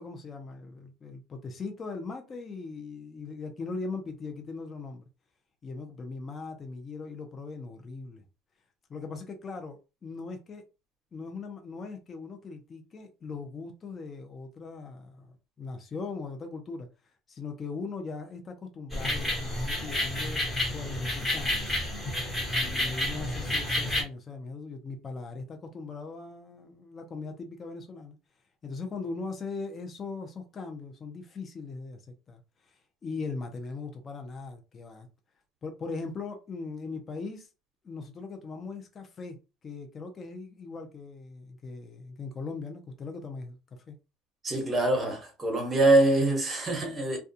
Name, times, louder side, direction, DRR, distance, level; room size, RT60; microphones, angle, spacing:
voice 1, 0.0-5.0 5.6-8.2 8.9-10.6 11.1-16.9 17.3-20.4 20.7-21.6 22.5-28.2 28.6-32.0 32.3-32.4 32.7-32.8 33.0-35.1 35.6-37.5 37.8-39.4 39.6-43.6 43.9-44.0, left 4 dB, 30° left, 0.6 m, -39 dB
sound 1, 18.9-24.0, left 1 dB, 15° left, 1.3 m, -30 dB
voice 2, 44.4-47.2, right 2 dB, 20° right, 1.1 m, -24 dB
2.3 x 2.3 x 2.7 m
supercardioid pair, 115°, 0 cm